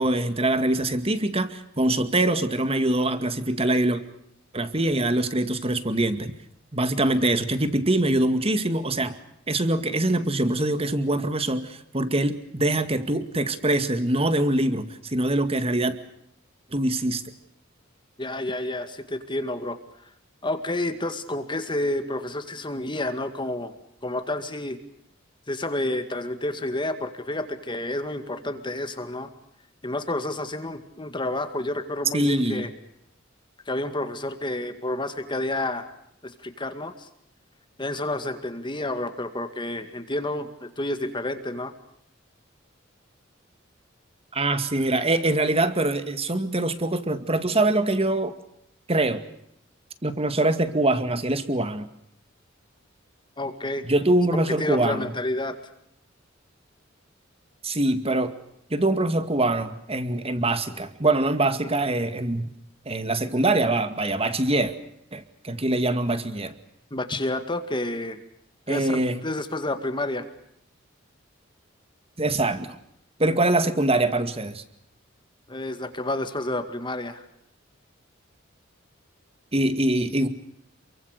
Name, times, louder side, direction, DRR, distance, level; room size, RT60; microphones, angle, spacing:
voice 1, 0.0-4.0 4.5-6.3 6.7-9.1 9.5-16.0 16.7-17.2 32.1-32.7 44.3-48.3 48.9-49.2 50.0-51.9 53.9-55.1 57.6-58.3 58.7-62.5 62.9-64.7 65.1-66.5 68.7-69.2 72.2-72.8 73.2-74.6 79.5-80.3, right 2 dB, 30° right, 10 dB, 2.1 m, -24 dB
voice 2, 18.2-19.8 20.4-23.7 24.0-24.8 25.5-29.3 29.8-32.7 33.7-35.9 36.2-37.1 37.8-41.7 53.4-53.8 54.3-55.6 66.9-68.2 68.7-70.3 75.5-77.2, left 1 dB, 25° left, 8 dB, 2.1 m, -30 dB
28.5 x 24.0 x 6.7 m, 0.73 s
head